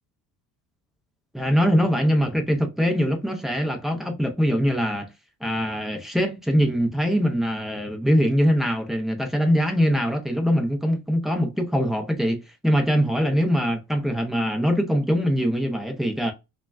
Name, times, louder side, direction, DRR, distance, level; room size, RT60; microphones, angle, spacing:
voice 1, 1.3-5.1 5.4-16.3, equal, ahead, 0.4 m, -22 dB
3.1 x 2.3 x 2.3 m
cardioid pair, 145°, 38 cm